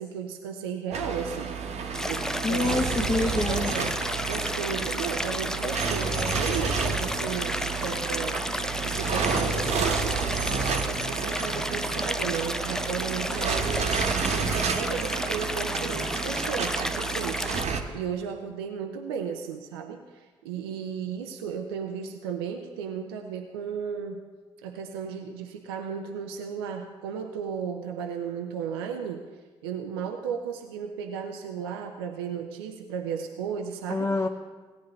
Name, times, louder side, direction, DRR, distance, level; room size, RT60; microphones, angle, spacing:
voice 1, 0.0-1.5 2.1-3.1 3.4-8.4 8.8-17.5 17.9-24.2 24.6-29.3 29.6-34.1, right 7 dB, 85° right, 4 dB, 0.6 m, -34 dB
sound 1, 0.9-17.8, right 5 dB, 60° right, 1.0 m, -30 dB
Stream, 1.9-17.7, left 1 dB, 5° left, 0.4 m, -32 dB
voice 2, 2.4-3.7 33.9-34.3, left 3 dB, 25° left, 3 dB, 0.8 m, -26 dB
17.5 x 9.3 x 3.1 m, 1.4 s
hypercardioid pair, 40°, 13 cm